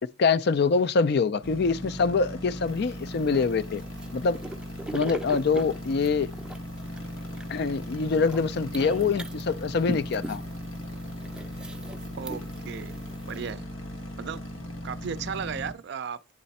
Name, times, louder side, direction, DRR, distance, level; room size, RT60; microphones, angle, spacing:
voice 1, 0.2-3.8 4.1-4.4 4.9-6.3 7.5-10.4, left 4 dB, 55° left, 0.4 m, -25 dB
sound 1, 1.4-15.7, left 1 dB, 80° left, 1.3 m, -38 dB
sound 2, 2.7-13.5, right 1 dB, 5° right, 0.5 m, -41 dB
voice 2, 12.2-13.0 13.3-13.7 14.2-14.4 14.8-16.3, right 6 dB, 60° right, 0.4 m, -35 dB
9.4 x 3.3 x 4.1 m
head